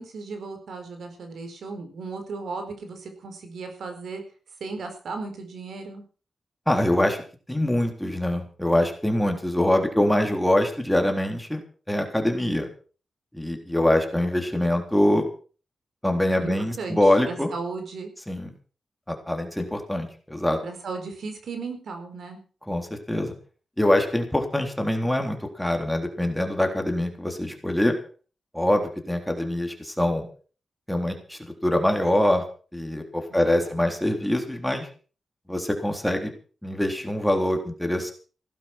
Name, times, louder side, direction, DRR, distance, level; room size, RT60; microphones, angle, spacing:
voice 1, 0.0-4.2 4.6-6.0 16.4-18.1 20.6-22.4 33.3-33.8, right 4 dB, 85° right, 6 dB, 4.6 m, -36 dB
voice 2, 6.7-7.2 7.5-11.6 11.9-12.7 13.3-15.3 16.0-17.5 18.3-18.5 19.1-20.6 22.7-23.3 23.8-27.9 28.5-30.3 30.9-32.4 32.7-34.9 35.5-36.3 36.6-38.1, left 1 dB, 5° left, 4 dB, 3.6 m, -24 dB
17.0 x 11.5 x 6.1 m, 0.40 s
wide cardioid pair, 115°, 0 cm